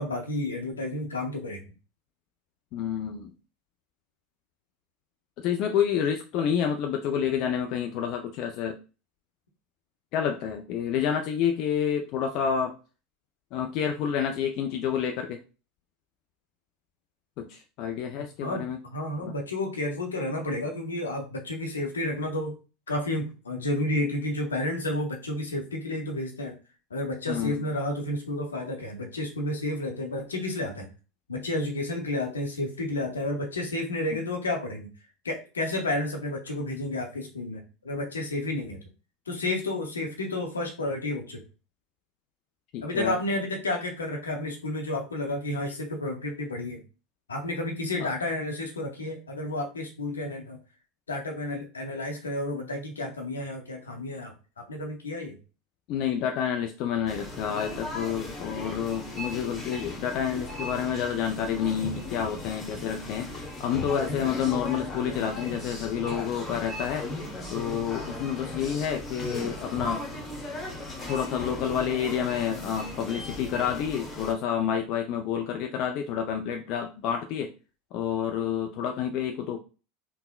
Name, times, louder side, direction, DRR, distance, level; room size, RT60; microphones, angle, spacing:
voice 1, 0.0-1.6 18.4-22.6 22.9-26.6 26.9-30.9 31.3-34.9 35.2-38.8 39.3-41.4 42.8-46.8 47.3-50.6 51.1-54.3 54.7-55.4, left 1 dB, 80° left, 2 dB, 0.7 m, -31 dB
voice 2, 2.7-3.3 5.4-8.8 10.1-12.7 13.5-15.4 17.4-18.8 19.2-19.3 27.3-27.6 34.1-34.2 42.7-43.2 55.9-63.3 63.6-67.1 67.5-70.0 71.1-77.5 77.9-79.6, left 8 dB, 50° left, 4 dB, 0.3 m, -29 dB
sound 1, 57.1-74.3, left 2 dB, 25° left, 1.0 m, -37 dB
3.5 x 2.0 x 2.3 m, 0.33 s
figure-of-eight pair, 75°, 0 cm